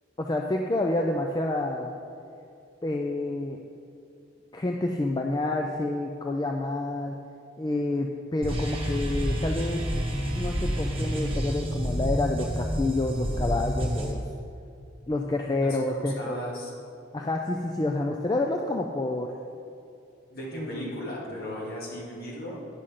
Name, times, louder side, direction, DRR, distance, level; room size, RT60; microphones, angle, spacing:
voice 1, 0.2-1.9 2.8-3.6 4.5-7.2 7.6-9.8 10.3-14.2 15.1-16.4 17.1-19.3 20.5-20.9, left 2 dB, 20° left, 2 dB, 0.3 m, -28 dB
sound 1, 8.4-14.1, equal, 30° right, 1.2 m, -29 dB
voice 2, 15.6-16.7 20.3-22.7, equal, 50° left, -5 dB, 2.1 m, -37 dB
9.7 x 5.8 x 5.0 m, 2.6 s
head